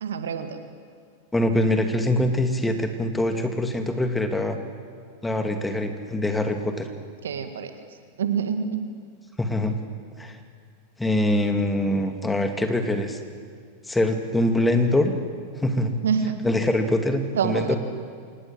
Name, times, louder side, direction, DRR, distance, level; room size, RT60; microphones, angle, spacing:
voice 1, 0.0-0.6 7.2-7.7 8.2-8.9 16.0-16.4 17.3-17.8, right 7 dB, 70° right, 8 dB, 1.9 m, -26 dB
voice 2, 1.3-4.6 5.2-6.9 9.4-9.7 10.2-10.4 11.0-13.2 13.9-15.1 15.6-15.9 16.4-17.8, left 1 dB, 10° left, 6 dB, 2.5 m, -23 dB
26.0 x 19.5 x 7.6 m, 2.1 s
figure-of-eight pair, 90°, 0 cm